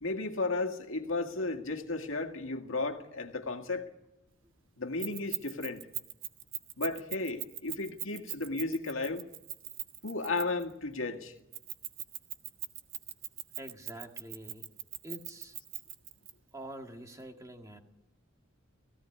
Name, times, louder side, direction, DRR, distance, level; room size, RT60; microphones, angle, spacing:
voice 1, 0.0-3.9 4.8-5.8 6.8-9.2 10.0-11.3, left 3 dB, 75° left, 2.0 m, -34 dB
Keys jangling, 5.0-10.7 11.5-16.3, right 13 dB, 65° right, 1.3 m, -40 dB
voice 2, 13.6-14.7 15.0-15.6 16.5-17.8, right 1 dB, 15° right, 1.9 m, -46 dB
17.5 x 16.0 x 9.6 m
head